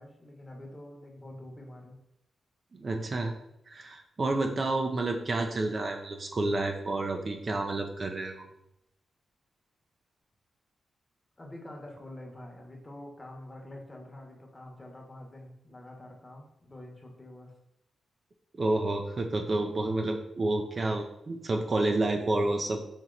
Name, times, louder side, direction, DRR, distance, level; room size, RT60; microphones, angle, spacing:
voice 1, 0.0-2.0 11.4-17.5, left 1 dB, 20° left, 0 dB, 1.0 m, -46 dB
voice 2, 2.7-3.4 3.7-8.4 18.5-22.8, right 2 dB, 40° right, 3 dB, 0.4 m, -29 dB
4.3 x 2.9 x 3.8 m, 0.83 s
cardioid pair, 90°, 0 cm